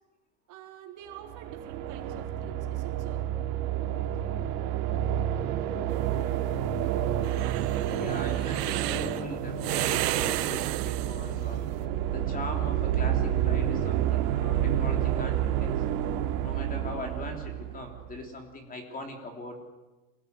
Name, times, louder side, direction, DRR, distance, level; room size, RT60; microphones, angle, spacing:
voice 1, 0.5-3.3, right 9 dB, 40° right, 1 dB, 4.1 m, -47 dB
sound 1, 1.1-18.2, right 11 dB, 65° right, 2.6 m, -29 dB
sound 2, 5.9-11.7, right 17 dB, 85° right, 1.2 m, -32 dB
voice 2, 7.9-11.6 12.1-15.8 16.4-19.6, left 2 dB, 20° left, 3 dB, 3.4 m, -40 dB
27.0 x 18.5 x 9.7 m, 1.1 s
supercardioid pair, 160°, 47 cm